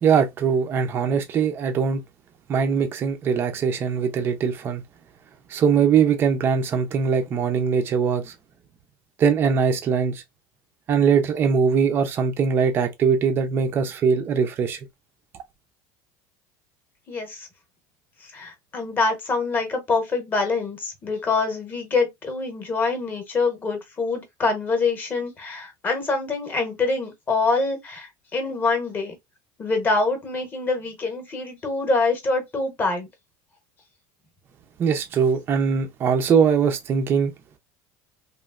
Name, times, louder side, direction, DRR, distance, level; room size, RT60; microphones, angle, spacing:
voice 1, 0.0-2.0 2.5-4.8 5.5-8.3 9.2-10.2 10.9-14.8 34.8-37.3, right 6 dB, 25° right, 0.4 m, -21 dB
voice 2, 17.1-17.5 18.3-29.1 29.6-33.1, left 3 dB, 20° left, 0.8 m, -25 dB
3.0 x 2.4 x 2.3 m
cardioid pair, 165°, 9 cm